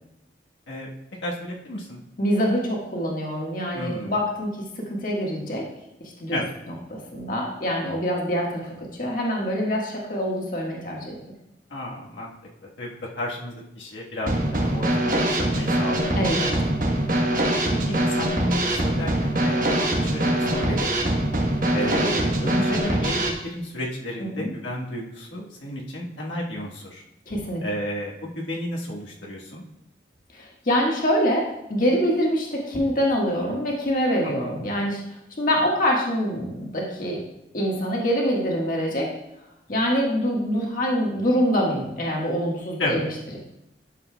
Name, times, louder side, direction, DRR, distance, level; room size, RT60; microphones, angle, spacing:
voice 1, 1.2-2.0 3.7-4.1 6.3-6.5 11.7-12.3 12.8-16.3 17.9-21.1 21.7-27.0 27.6-29.6 34.4-34.5 42.8-43.0, left 1 dB, 90° left, -3 dB, 1.4 m, -32 dB
voice 2, 2.2-5.6 6.2-6.4 6.7-11.1 16.1-16.8 24.2-24.5 27.3-27.6 30.3-35.0 35.4-37.2 37.5-39.1 39.7-43.1, equal, 50° left, -2 dB, 1.6 m, -25 dB
Drum kit / Snare drum, 14.3-23.3, right 1 dB, 50° right, 1.2 m, -23 dB
11.5 x 6.8 x 2.3 m, 0.84 s
head